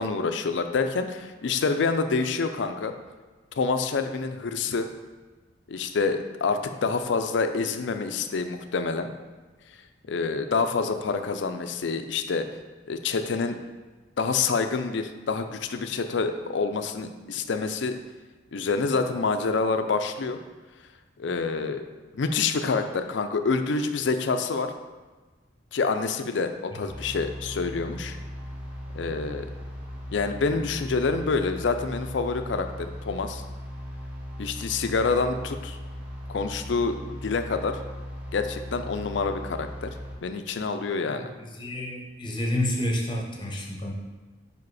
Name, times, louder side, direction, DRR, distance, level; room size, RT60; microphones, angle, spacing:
voice 1, 0.0-2.9 3.6-4.9 5.7-9.1 10.1-12.4 12.9-13.6 14.2-17.9 18.5-20.4 21.2-21.8 22.1-24.7 25.7-28.2 28.9-29.5 30.1-33.4 34.4-35.8 36.3-37.8 38.3-40.0 40.2-41.3, left 4 dB, 65° left, 8 dB, 0.4 m, -27 dB
sound 1, 26.9-40.2, equal, 5° right, 0.8 m, -38 dB
voice 2, 41.6-43.9, left 1 dB, 25° left, -1 dB, 0.8 m, -29 dB
5.1 x 4.8 x 4.7 m, 1.3 s
head